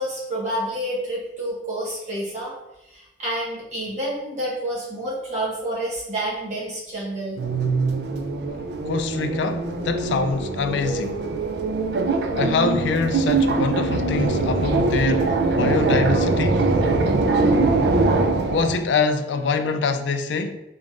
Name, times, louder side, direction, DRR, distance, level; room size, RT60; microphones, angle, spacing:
voice 1, 0.0-2.5 2.9-7.4, right 1 dB, 40° right, 1.4 m, -29 dB
sound 1, 7.4-18.9, right 3 dB, 65° right, 0.4 m, -22 dB
voice 2, 8.5-11.2 12.3-16.6 18.5-20.6, left 4 dB, 80° left, 0.3 m, -24 dB
3.8 x 3.5 x 2.5 m
head